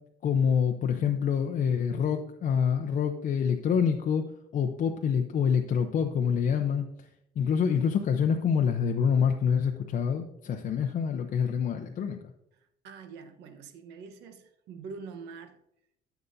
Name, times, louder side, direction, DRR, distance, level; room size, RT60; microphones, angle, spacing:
voice 1, 0.2-4.2 4.5-6.8 7.4-12.2, left 7 dB, 50° left, 0.7 m, -26 dB
voice 2, 12.6-15.6, right 5 dB, 90° right, 1.1 m, -45 dB
13.5 x 7.1 x 2.7 m
cardioid pair, 110°, 17 cm